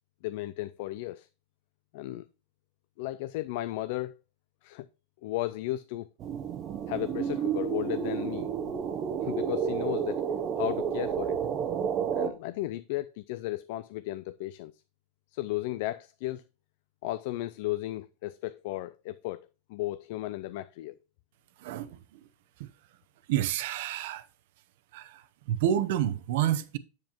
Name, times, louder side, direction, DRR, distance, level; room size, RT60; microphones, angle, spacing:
voice 1, 0.2-1.3 1.9-2.3 3.0-4.2 4.6-4.9 5.2-6.1 6.9-8.5 9.2-10.2 10.6-11.4 12.1-14.7 15.3-16.4 17.0-21.0, left 16 dB, 60° left, 0.4 m, -34 dB
sound 1, 6.2-12.3, right 7 dB, 35° right, 0.9 m, -31 dB
voice 2, 23.3-24.2 24.9-25.1 25.5-26.8, right 11 dB, 70° right, 0.8 m, -28 dB
7.5 x 7.3 x 3.0 m
supercardioid pair, 145°, 0 cm